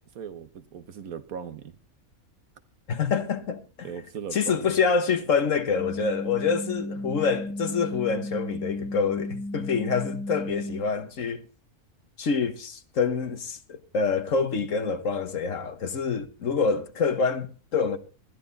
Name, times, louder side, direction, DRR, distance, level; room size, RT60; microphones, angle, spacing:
voice 1, 0.1-1.8 3.8-4.8, right 7 dB, 75° right, 1.5 m, -38 dB
voice 2, 2.9-3.9 4.3-11.4 12.2-18.0, left 5 dB, 60° left, 1.5 m, -26 dB
sound 1, 5.8-10.8, left 1 dB, 5° left, 1.1 m, -34 dB
20.5 x 13.5 x 4.1 m
omnidirectional pair, 1.5 m